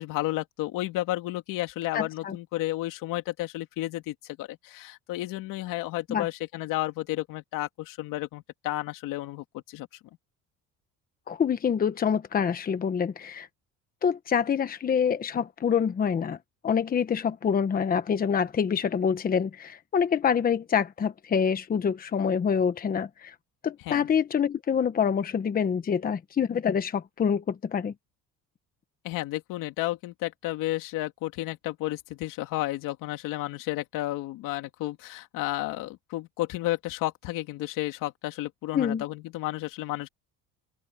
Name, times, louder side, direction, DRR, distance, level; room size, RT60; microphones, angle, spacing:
voice 1, 0.0-9.9 23.8-24.1 29.0-40.1, left 17 dB, 80° left, 2.6 m, -32 dB
voice 2, 1.9-2.4 6.1-6.3 11.3-13.5 14.0-16.4 16.6-23.3 23.6-27.9 38.7-39.0, left 7 dB, 30° left, 1.1 m, -26 dB
open air
cardioid pair, 140°, 32 cm